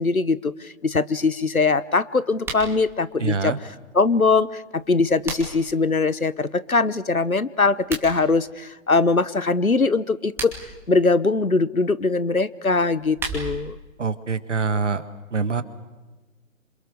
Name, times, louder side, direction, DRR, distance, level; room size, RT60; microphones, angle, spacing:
voice 1, 0.0-3.6 3.9-4.6 4.9-10.5 10.9-13.8, left 3 dB, 90° left, 17 dB, 1.2 m, -21 dB
sound 1, 2.3-2.7 4.7-5.7 7.7-8.1 10.1-10.8 12.8-13.7, right 3 dB, 5° right, 2.6 m, -34 dB
voice 2, 3.2-3.6 14.0-15.0 15.3-15.6, right 4 dB, 60° right, 12 dB, 1.9 m, -24 dB
27.0 x 27.0 x 6.8 m, 1.2 s
figure-of-eight pair, 140°, 41 cm